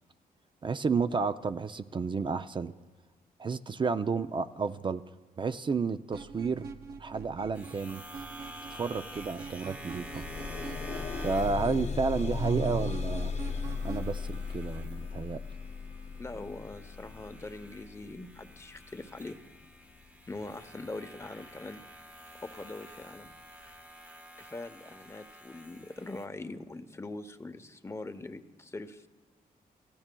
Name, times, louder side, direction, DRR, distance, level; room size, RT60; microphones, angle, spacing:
voice 1, 0.6-2.7 3.4-5.0 5.4-6.7 7.0-8.0 8.7-10.2 11.2-13.3 13.8-15.4, right 5 dB, 30° right, 11 dB, 0.4 m, -31 dB
sound 1, 6.1-14.1, right 5 dB, 90° right, 0.7 m, -45 dB
sound 2, 7.5-26.3, equal, 10° right, 0.9 m, -50 dB
sound 3, 9.1-9.2 9.4-20.5 21.2-21.3 21.8-21.9, left 5 dB, 45° left, 1.0 m, -37 dB
voice 2, 16.2-19.4 20.3-21.9 22.4-23.3 24.4-29.1, left 2 dB, 15° left, 8 dB, 0.8 m, -42 dB
29.5 x 13.5 x 2.2 m, 1.3 s
cardioid pair, 85°, 15 cm